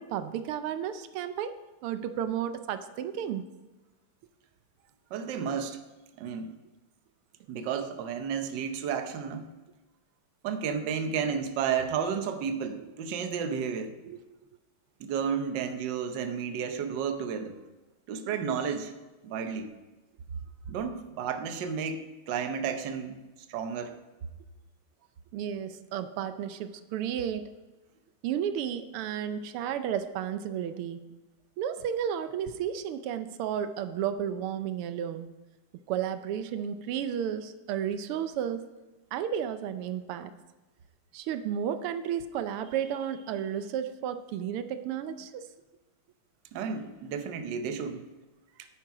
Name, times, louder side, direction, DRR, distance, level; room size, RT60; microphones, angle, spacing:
voice 1, 0.0-1.6 1.8-3.5 14.1-14.2 25.3-27.5 28.2-31.0 31.6-35.3 35.9-38.6 39.1-40.3 41.1-45.5, right 9 dB, 90° right, 10 dB, 1.6 m, -32 dB
voice 2, 5.1-5.8 6.2-6.5 7.5-9.5 10.4-13.9 15.0-17.6 18.1-18.9 19.2-19.7 20.7-23.2 23.5-23.9 46.5-48.0, right 7 dB, 65° right, 7 dB, 1.4 m, -32 dB
10.5 x 8.7 x 4.9 m, 1.2 s
omnidirectional pair, 2.4 m